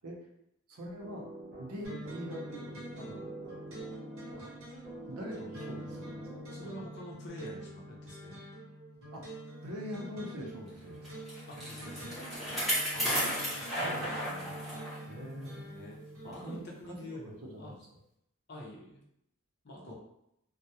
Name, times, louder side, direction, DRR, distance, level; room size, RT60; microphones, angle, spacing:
voice 1, 0.7-1.3 1.6-3.3 5.0-6.9 9.1-9.3 9.6-11.2 12.9-14.6 15.0-15.7 16.2-17.8 19.9-20.0, equal, 90° right, -1 dB, 0.6 m, -44 dB
sound 1, 1.0-7.0, right 1 dB, 40° right, 0.8 m, -47 dB
sound 2, 1.8-16.6, right 1 dB, 65° right, 0.9 m, -46 dB
voice 2, 6.5-8.4 11.5-12.1 15.7-16.0 16.2-17.2 17.6-17.8 18.5-19.0 19.6-19.9, left 1 dB, 50° left, -2 dB, 0.5 m, -46 dB
Bicycle, 11.0-15.0 15.4-15.5 16.3-16.4, equal, ahead, 0.7 m, -34 dB
2.2 x 2.1 x 2.7 m, 0.78 s
head